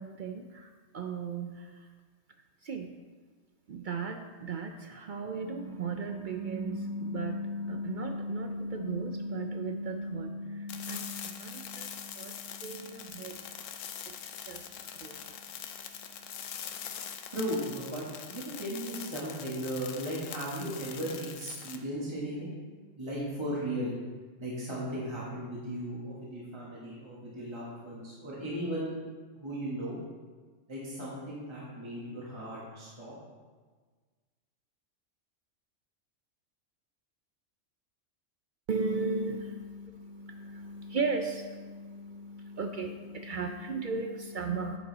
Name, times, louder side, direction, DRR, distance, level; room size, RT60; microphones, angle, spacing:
voice 1, 0.0-1.9 2.6-2.9 3.7-13.6 14.1-15.3 38.7-44.8, right 3 dB, 60° right, 5 dB, 0.5 m, -36 dB
sound 1, 10.7-21.8, left 8 dB, 80° left, 1.0 m, -43 dB
voice 2, 17.3-22.5 23.0-23.9 24.4-29.0 29.4-30.0 30.7-33.1, right 1 dB, 20° right, -7 dB, 1.6 m, -36 dB
9.8 x 5.4 x 4.0 m, 1.5 s
omnidirectional pair, 1.3 m